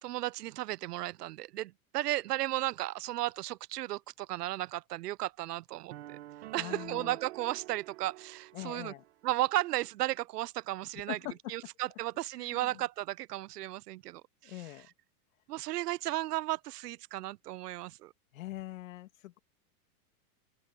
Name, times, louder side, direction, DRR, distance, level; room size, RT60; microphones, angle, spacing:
voice 1, 0.0-6.2 6.5-8.9 9.2-11.2 11.5-14.5 15.5-18.1, right 16 dB, 85° right, 0.8 m, -34 dB
sound 1, 5.9-9.1, right 15 dB, 45° right, 1.1 m, -47 dB
voice 2, 6.6-7.2 8.5-9.0 10.9-11.4 12.4-12.8 14.4-14.9 18.3-19.4, left 15 dB, 60° left, 2.6 m, -43 dB
open air
supercardioid pair, 180°, 46 cm